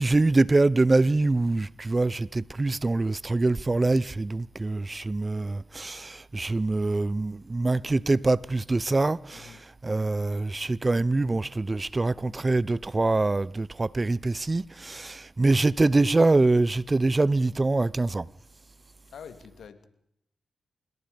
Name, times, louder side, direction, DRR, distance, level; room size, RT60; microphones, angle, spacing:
voice 1, 0.0-18.3, right 2 dB, 30° right, 0.8 m, -24 dB
voice 2, 9.3-9.6 19.1-19.9, left 7 dB, 75° left, 2.5 m, -46 dB
26.5 x 22.0 x 5.3 m
supercardioid pair, 40°, 0 cm